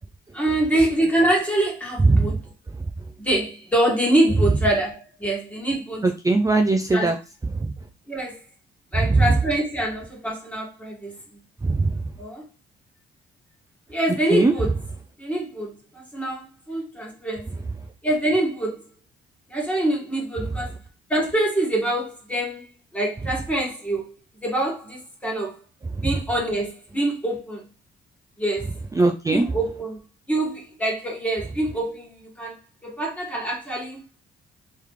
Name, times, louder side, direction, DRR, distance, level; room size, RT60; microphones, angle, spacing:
voice 1, 0.3-2.4 3.2-6.0 6.9-7.1 8.1-8.4 8.9-11.2 12.2-12.4 13.9-14.7 15.2-17.6 18.0-18.8 19.5-20.8 21.1-24.1 24.4-25.6 26.0-27.7 28.4-28.7 29.3-30.0 30.3-32.6 32.8-34.0, right 1 dB, 5° left, 1.8 m, -25 dB
voice 2, 6.0-7.2 7.5-7.7 9.0-9.4 11.6-12.0 14.3-14.5 25.9-26.1 28.9-29.5, right 3 dB, 15° right, 0.5 m, -19 dB
3.6 x 3.1 x 3.2 m
cardioid pair, 90°, 20 cm